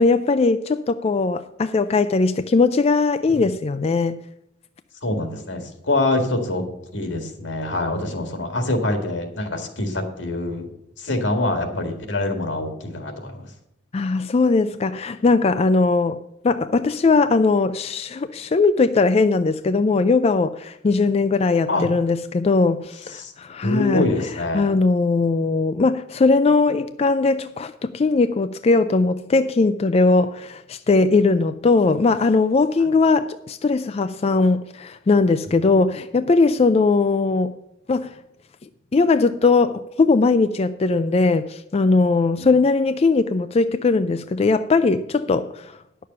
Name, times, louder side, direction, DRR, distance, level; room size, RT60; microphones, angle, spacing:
voice 1, 0.0-4.2 13.9-16.2 16.4-24.0 24.5-37.5 37.9-38.1 38.9-45.7, left 3 dB, 35° left, 0.4 m, -19 dB
voice 2, 5.0-6.6 6.9-10.7 11.0-13.5 21.7-21.9 23.1-23.3 23.6-24.7 32.8-32.9 35.6-35.8 42.4-42.6, left 2 dB, 85° left, 1.9 m, -25 dB
10.0 x 6.6 x 6.8 m
head